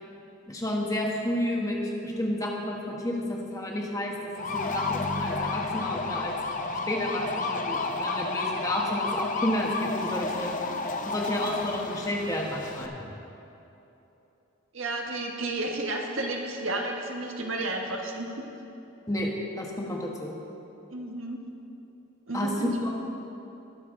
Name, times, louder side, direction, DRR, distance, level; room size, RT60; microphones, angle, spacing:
voice 1, 0.5-6.3 6.9-10.5 11.0-12.9 19.1-19.3 19.6-20.3 22.3-22.5 22.8-22.9, left 1 dB, 15° left, -1 dB, 1.2 m, -31 dB
sound 1, 4.4-12.9, left 3 dB, 40° left, 0.6 m, -31 dB
voice 2, 14.7-18.5 20.9-21.4 22.3-22.7, right 2 dB, 75° right, 1 dB, 1.3 m, -32 dB
20.5 x 6.9 x 3.7 m, 3.0 s
head